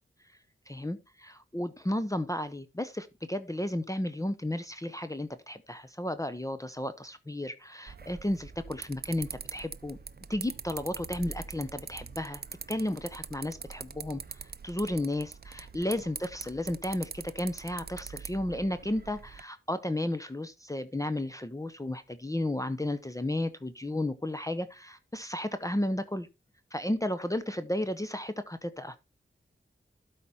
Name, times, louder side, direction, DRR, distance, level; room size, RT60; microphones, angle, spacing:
voice 1, 0.7-10.0 10.3-12.4 12.7-26.3 26.7-29.0, left 1 dB, 15° left, 0.7 m, -33 dB
sound 1, 7.9-19.4, right 5 dB, 50° right, 0.6 m, -43 dB
12.5 x 5.0 x 4.2 m
wide cardioid pair, 90°, 21 cm